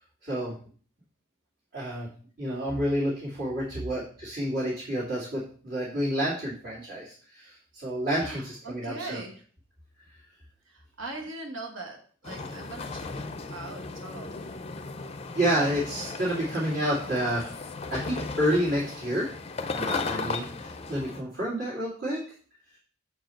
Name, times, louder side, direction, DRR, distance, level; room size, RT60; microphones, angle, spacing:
voice 1, 0.2-0.5 1.7-2.1 2.4-9.2 15.3-17.5 17.9-19.3 19.7-22.2, equal, 55° right, -8 dB, 2.4 m, -29 dB
voice 2, 8.2-9.4 10.7-13.2 13.5-14.5, right 2 dB, 70° right, 2 dB, 1.2 m, -41 dB
sound 1, 12.2-21.2, left 4 dB, 30° left, 0.4 m, -36 dB
7.0 x 4.7 x 4.4 m, 0.43 s
head